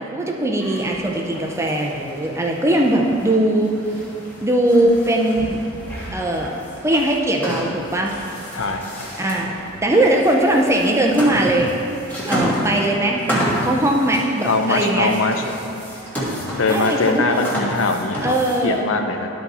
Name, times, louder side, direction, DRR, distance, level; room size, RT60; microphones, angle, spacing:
voice 1, 0.0-3.7 4.4-5.6 6.1-8.2 9.2-9.5 9.8-11.7 12.3-15.1 16.7-17.3 18.2-18.9, right 1 dB, 15° right, 0 dB, 0.6 m, -20 dB
sound 1, 0.6-18.8, equal, 10° left, 1.5 m, -30 dB
voice 2, 8.5-9.1 14.4-15.4 16.5-18.4 18.6-19.3, left 3 dB, 70° left, 5 dB, 0.6 m, -21 dB
12.0 x 4.1 x 4.3 m, 2.7 s
head